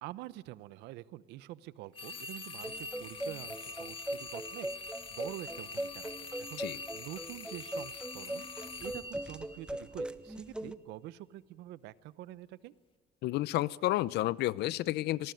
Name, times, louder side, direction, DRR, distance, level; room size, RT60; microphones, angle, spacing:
voice 1, 0.0-12.7, right 15 dB, 90° right, 17 dB, 0.9 m, -47 dB
sound 1, 1.9-10.1, left 3 dB, 30° left, 2.0 m, -44 dB
sound 2, 2.6-10.8, right 1 dB, 5° right, 1.1 m, -40 dB
voice 2, 13.2-15.3, left 16 dB, 80° left, 20 dB, 0.7 m, -31 dB
25.0 x 20.0 x 9.3 m, 1.4 s
cardioid pair, 110°, 17 cm